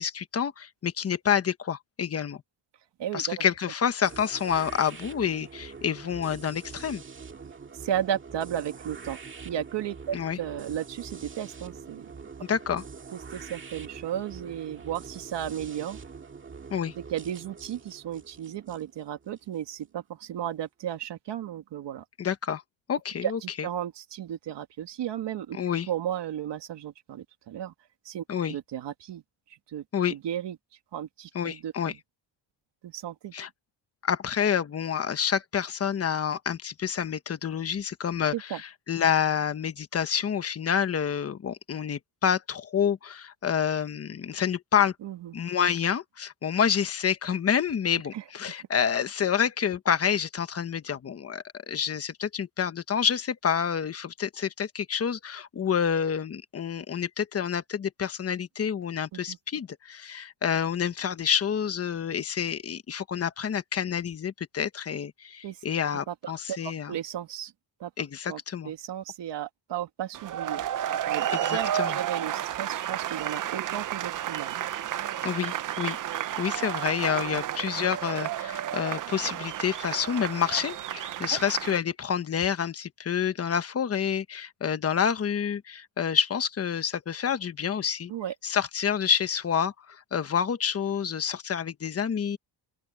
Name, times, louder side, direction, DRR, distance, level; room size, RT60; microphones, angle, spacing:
voice 1, 0.0-2.4 3.1-7.0 10.1-10.4 12.5-12.8 16.7-16.9 22.2-22.6 22.9-23.7 25.5-25.9 28.3-28.5 29.9-30.2 31.3-31.9 33.3-33.5 34.0-44.9 45.3-66.9 68.0-68.7 71.3-72.0 75.2-76.0 76.4-88.1 88.4-92.4, left 8 dB, 30° left, 1.1 m, -28 dB
voice 2, 3.0-3.4 7.7-9.2 9.4-12.1 13.1-16.0 17.0-22.0 23.2-25.6 25.9-27.7 28.0-29.2 29.5-29.8 30.1-30.6 30.9-32.0 32.8-33.3 38.3-38.6 45.0-45.3 48.1-48.2 59.3-59.4 65.4-65.6 66.1-67.5 67.8-67.9 68.3-70.6 71.1-74.6 77.3-77.4 81.3-81.4 88.1-88.3, right 10 dB, 65° right, 2.4 m, -34 dB
sound 1, 4.0-19.9, right 5 dB, 25° right, 2.0 m, -44 dB
sound 2, 70.1-81.8, right 11 dB, 45° right, 0.6 m, -32 dB
open air
cardioid pair, 165°, 45 cm